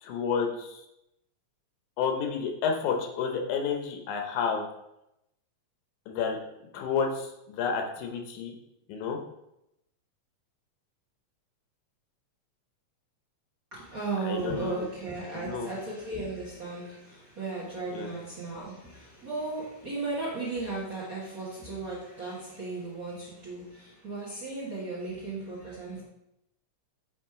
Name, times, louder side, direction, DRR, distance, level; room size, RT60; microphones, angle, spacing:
voice 1, 0.0-0.8 2.0-4.7 6.1-6.4 6.7-8.5 8.9-9.2 14.2-14.9 15.3-15.7 17.9-18.1, left 6 dB, 85° left, 3 dB, 2.3 m, -30 dB
voice 2, 13.9-16.9 17.4-18.7 19.2-23.6 24.0-26.0, right 3 dB, 45° right, -7 dB, 1.2 m, -35 dB
7.4 x 3.1 x 4.7 m, 0.85 s
omnidirectional pair, 3.4 m